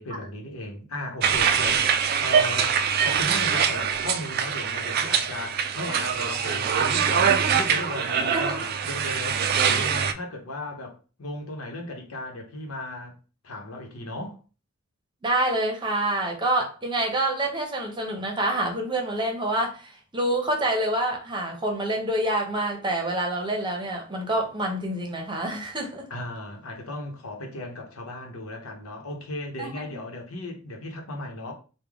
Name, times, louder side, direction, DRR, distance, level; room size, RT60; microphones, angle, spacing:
voice 1, 0.0-1.9 2.2-2.7 3.0-13.1 13.4-14.4 26.1-31.5, left 2 dB, 90° left, 0.9 m, -36 dB
sound 1, 1.2-10.1, right 7 dB, 45° right, 0.3 m, -24 dB
voice 2, 8.2-8.6 15.2-26.1 29.6-30.0, right 1 dB, 20° right, 0.7 m, -27 dB
3.4 x 2.2 x 3.5 m
head